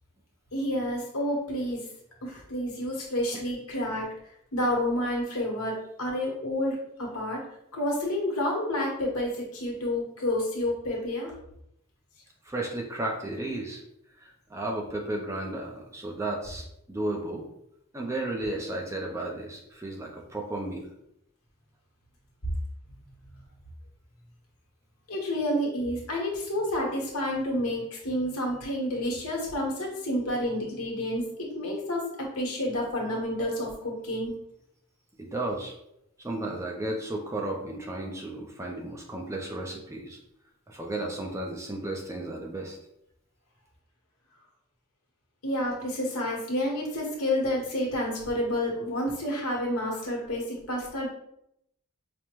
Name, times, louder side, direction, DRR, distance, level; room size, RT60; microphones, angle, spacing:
voice 1, 0.5-1.9 2.2-4.1 4.5-7.4 7.7-11.3 25.1-34.3 45.4-51.1, left 1 dB, 85° left, -2 dB, 1.1 m, -29 dB
voice 2, 12.4-13.8 14.2-17.4 17.9-20.9 35.2-35.7 36.2-40.2 40.7-42.8, right 2 dB, 15° right, 1 dB, 0.4 m, -34 dB
5.0 x 2.1 x 3.0 m, 0.78 s
head